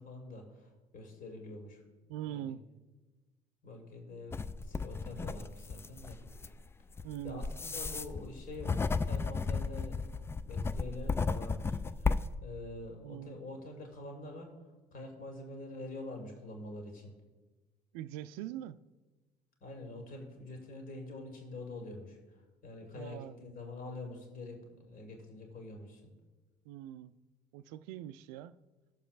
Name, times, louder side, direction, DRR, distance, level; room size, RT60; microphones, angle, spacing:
voice 1, 0.0-1.8 2.3-2.5 3.6-6.2 7.2-14.5 14.9-17.1 19.6-22.2 22.6-26.1, left 2 dB, 40° left, 2.1 m, -46 dB
voice 2, 2.1-2.6 7.0-7.4 13.0-13.4 17.9-18.8 22.9-23.4 26.6-27.1 27.5-28.6, right 12 dB, 60° right, 0.4 m, -42 dB
sound 1, 4.3-12.4, left 4 dB, 10° left, 0.3 m, -34 dB
19.0 x 7.0 x 2.5 m
figure-of-eight pair, 55°, 21 cm